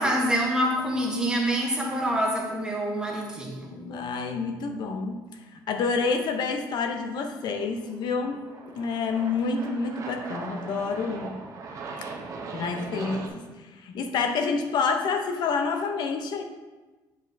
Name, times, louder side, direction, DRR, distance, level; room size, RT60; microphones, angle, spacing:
voice 1, 0.0-3.8, equal, 10° right, -1 dB, 1.0 m, -26 dB
voice 2, 3.7-5.3 5.5-8.4 8.8-11.4 12.5-16.4, left 4 dB, 60° left, 6 dB, 0.6 m, -28 dB
Aircraft, 7.6-13.3, right 4 dB, 40° right, 0.7 m, -39 dB
7.8 x 5.1 x 2.6 m, 1.2 s
cardioid pair, 145°, 8 cm